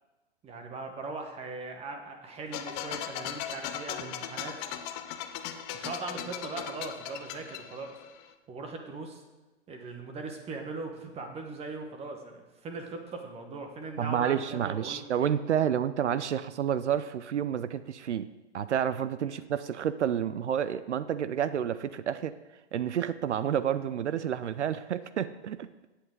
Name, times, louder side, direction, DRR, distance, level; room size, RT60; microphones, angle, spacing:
voice 1, 0.4-4.5 5.7-7.9 8.5-9.2 9.7-15.1 19.2-19.3, right 3 dB, 15° right, 4 dB, 1.2 m, -40 dB
sound 1, 2.5-8.3, left 10 dB, 25° left, 0.6 m, -38 dB
voice 2, 14.0-18.3 18.5-22.3 22.7-25.7, right 9 dB, 75° right, 14 dB, 0.6 m, -29 dB
13.5 x 8.5 x 3.8 m, 1.1 s
hypercardioid pair, 120°, 35 cm